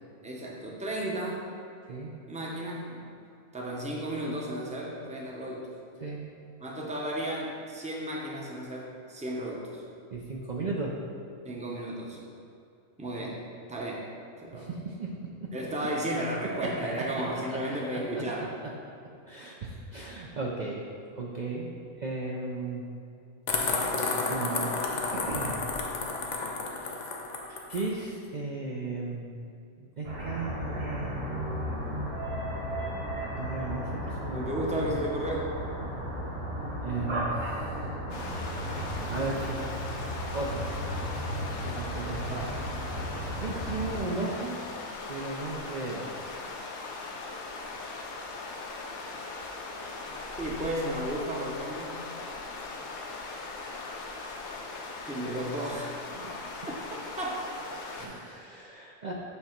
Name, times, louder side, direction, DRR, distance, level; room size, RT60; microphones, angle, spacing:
voice 1, 0.2-1.5 2.3-3.0 3.5-5.7 6.6-9.8 11.4-12.2 13.0-13.4 13.7-14.1 14.4-14.7 15.5-18.5 34.3-35.6 42.3-42.5 50.4-52.1 55.1-56.0 56.7-56.8 57.2-57.5, right 1 dB, 10° right, -2 dB, 0.5 m, -33 dB
voice 2, 10.1-10.9 14.5-15.1 17.5-17.6 17.9-18.5 19.3-20.8 21.1-22.8 24.3-24.7 25.1-25.7 27.5-29.3 29.8-32.1 33.4-34.9 36.8-37.5 38.8-39.6 40.3-40.8 41.6-42.2 43.0-43.1 43.4-44.5 45.1-46.2 56.1-56.3 57.9-59.1, right 3 dB, 70° right, -3 dB, 0.4 m, -36 dB
sound 1, 23.5-27.9, left 3 dB, 55° left, 0.5 m, -31 dB
sound 2, 30.0-44.0, equal, 50° right, 1.5 m, -35 dB
sound 3, 38.1-58.1, left 3 dB, 80° left, 1.2 m, -40 dB
7.5 x 2.9 x 5.8 m, 2.6 s
omnidirectional pair, 1.5 m